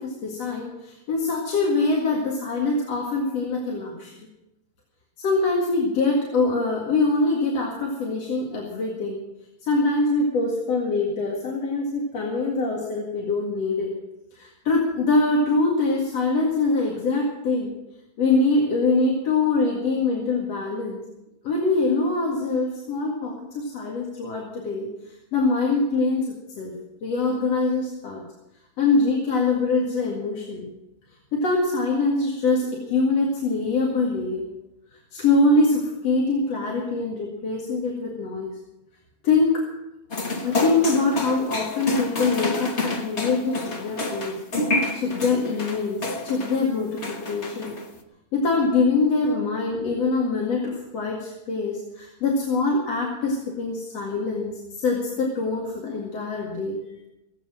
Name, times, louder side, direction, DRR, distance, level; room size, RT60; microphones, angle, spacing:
voice 1, 0.0-4.1 5.2-9.2 9.7-13.9 14.3-17.7 18.2-21.0 21.4-24.9 25.3-26.3 26.6-26.7 27.0-28.2 28.8-30.6 31.3-34.4 35.1-38.5 39.2-39.6 40.4-44.4 44.9-47.7 48.3-54.5 54.8-56.8, left 3 dB, 60° left, -2 dB, 3.0 m, -24 dB
sound 1, 40.1-46.6 47.0-47.9, left 2 dB, 85° left, 0.6 m, -29 dB
17.0 x 8.5 x 7.6 m, 0.93 s
omnidirectional pair, 3.4 m